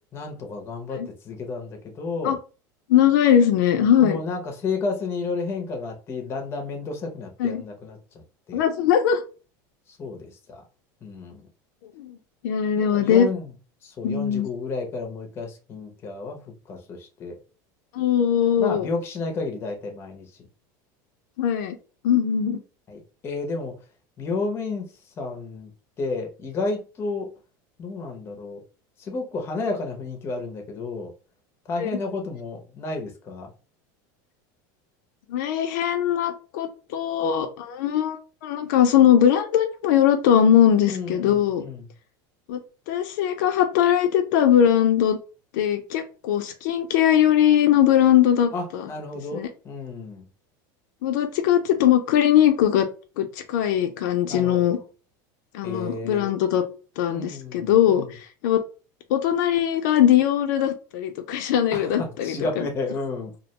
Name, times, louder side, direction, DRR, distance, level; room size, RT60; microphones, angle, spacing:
voice 1, 0.1-2.4 4.0-8.6 9.9-10.6 11.0-11.4 12.8-13.5 13.8-17.4 18.6-20.3 22.9-23.8 24.2-24.9 25.2-25.7 26.0-27.3 27.8-28.6 29.0-31.1 31.7-33.5 40.9-41.9 48.5-50.2 54.3-54.8 55.6-56.3 57.1-58.1 61.7-63.4, left 3 dB, 25° left, 0.6 m, -32 dB
voice 2, 2.9-4.2 7.4-7.6 8.5-9.2 12.0-12.2 12.4-13.3 14.0-14.5 17.9-18.9 21.4-21.8 22.0-22.6 31.8-32.0 35.3-41.6 42.5-42.6 42.9-45.2 45.5-48.8 49.3-49.5 51.0-52.9 53.2-54.8 55.5-56.6 57.0-58.6 59.1-62.7, left 10 dB, 70° left, 0.4 m, -20 dB
2.3 x 2.1 x 2.8 m
supercardioid pair, 150°, 10 cm